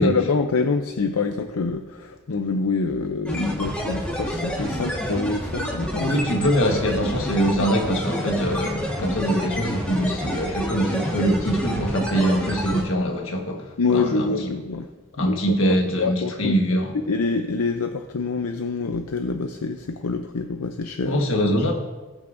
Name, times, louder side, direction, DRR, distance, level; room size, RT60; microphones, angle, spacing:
voice 1, 0.0-6.2 13.8-14.9 15.2-16.8 17.1-21.2, left 4 dB, 85° left, 0.6 m, -26 dB
sound 1, 3.3-12.8, equal, 5° left, 1.5 m, -28 dB
voice 2, 6.0-14.3 15.2-16.9 21.1-21.7, equal, 65° left, 1.4 m, -23 dB
19.0 x 6.9 x 2.6 m
head